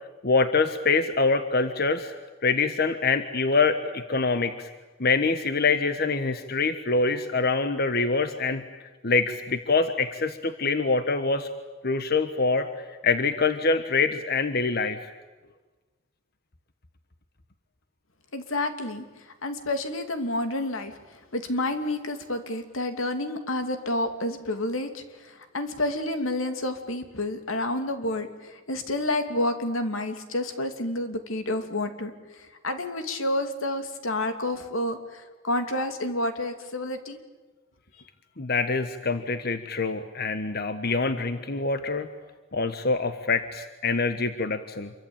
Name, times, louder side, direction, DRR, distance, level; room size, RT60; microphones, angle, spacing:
voice 1, 0.2-2.1 2.4-4.7 5.0-8.6 9.0-11.5 11.8-15.1 38.4-42.1 42.5-44.9, left 4 dB, 50° left, 9 dB, 1.3 m, -25 dB
voice 2, 18.3-19.0 19.4-20.9 21.3-32.1 32.6-37.2, left 1 dB, 85° left, 7 dB, 2.7 m, -29 dB
27.5 x 23.5 x 8.8 m, 1.2 s
head